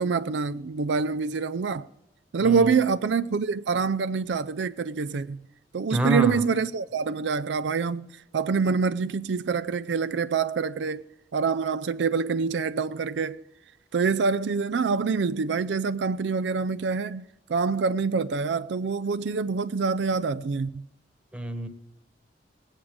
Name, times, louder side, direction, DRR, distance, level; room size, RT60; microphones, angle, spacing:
voice 1, 0.0-1.9 2.3-5.4 5.7-8.1 8.3-11.0 11.3-13.4 13.9-20.8, right 5 dB, 75° right, 0.4 m, -26 dB
voice 2, 5.9-6.4 21.3-21.7, right 1 dB, 5° right, 1.2 m, -27 dB
19.0 x 8.9 x 5.0 m
head